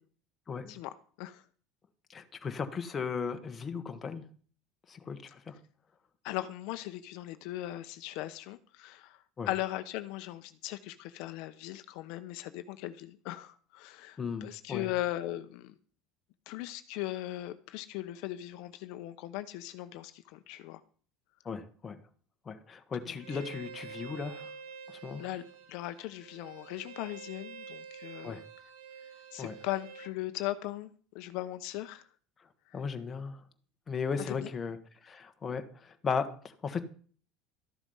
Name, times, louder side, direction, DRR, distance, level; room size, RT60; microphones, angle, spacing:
voice 1, 0.7-1.4 6.2-15.7 16.5-20.8 23.1-23.4 25.2-28.4 29.3-32.1 32.7-32.8 34.2-34.5, left 15 dB, 55° left, 11 dB, 0.8 m, -39 dB
voice 2, 2.1-4.2 4.9-5.6 9.4-9.5 14.2-14.9 21.4-22.0 22.4-24.5 24.9-25.2 28.2-28.4 29.4-29.5 32.7-33.4 33.9-34.8 35.0-36.8, left 5 dB, 15° left, 6 dB, 1.3 m, -36 dB
Bowed string instrument, 23.2-30.1, right 6 dB, 70° right, 5.2 m, -48 dB
13.5 x 11.0 x 5.5 m, 0.43 s
cardioid pair, 180°, 0 cm